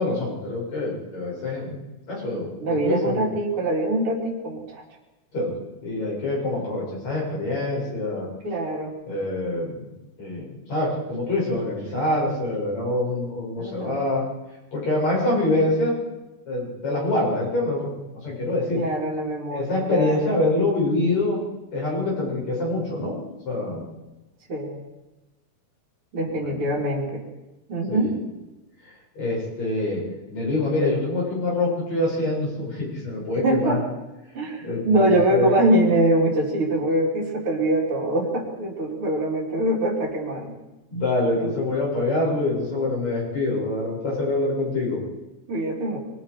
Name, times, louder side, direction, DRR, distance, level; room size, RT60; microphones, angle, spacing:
voice 1, 0.0-1.8 2.1-3.3 5.3-5.5 5.8-8.3 9.0-9.9 10.2-14.2 14.7-15.9 16.5-17.9 18.2-18.8 19.5-21.4 21.7-23.8 26.3-26.7 27.9-28.1 29.2-30.0 30.3-33.8 34.6-35.5 40.9-45.0, left 2 dB, 55° left, -4 dB, 9.1 m, -25 dB
voice 2, 2.6-4.8 8.4-8.9 13.5-14.0 18.7-20.3 24.5-24.8 26.1-27.2 27.7-28.1 33.4-33.8 34.3-40.5 41.4-41.7 45.5-46.0, right 1 dB, 40° right, -6 dB, 4.5 m, -23 dB
28.0 x 23.0 x 5.1 m, 1.0 s
omnidirectional pair, 3.7 m